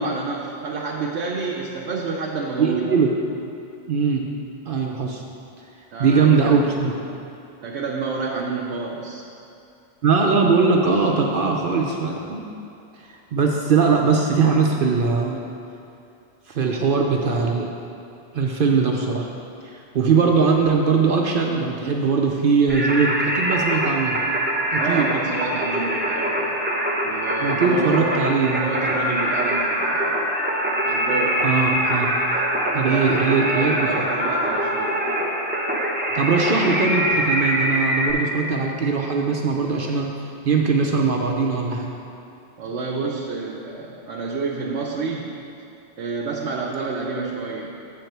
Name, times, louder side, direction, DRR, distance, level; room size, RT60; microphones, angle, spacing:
voice 1, 0.0-2.9 5.9-6.6 7.6-9.2 24.8-26.5 27.0-30.2 30.9-31.5 32.8-35.0 42.6-45.4 46.0-47.7, right 4 dB, 85° right, -3 dB, 1.0 m, -29 dB
voice 2, 2.6-3.1 3.9-4.3 4.7-5.2 6.0-6.9 10.0-12.5 13.1-15.4 16.5-17.7 18.3-19.3 19.6-24.2 24.7-25.1 27.4-28.8 31.4-32.1 32.7-34.0 36.1-40.1 40.4-41.9, right 5 dB, 60° right, 1 dB, 0.7 m, -20 dB
Singing, 22.7-38.1, right 1 dB, 10° right, 0.7 m, -23 dB
7.6 x 4.6 x 6.6 m, 2.6 s
omnidirectional pair, 1.1 m